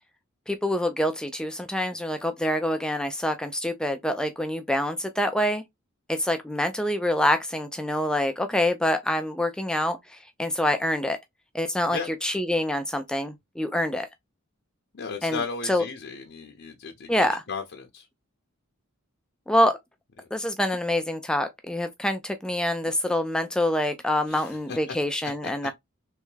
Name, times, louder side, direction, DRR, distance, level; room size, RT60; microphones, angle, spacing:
voice 1, 0.5-5.6 6.1-11.2 11.5-14.1 15.2-15.8 17.1-17.4 19.5-19.8 20.3-25.7, left 1 dB, 5° left, 0.3 m, -26 dB
voice 2, 14.9-18.1 20.2-20.3 24.3-25.0 25.4-25.5, left 5 dB, 55° left, 0.6 m, -35 dB
3.4 x 3.1 x 3.2 m
head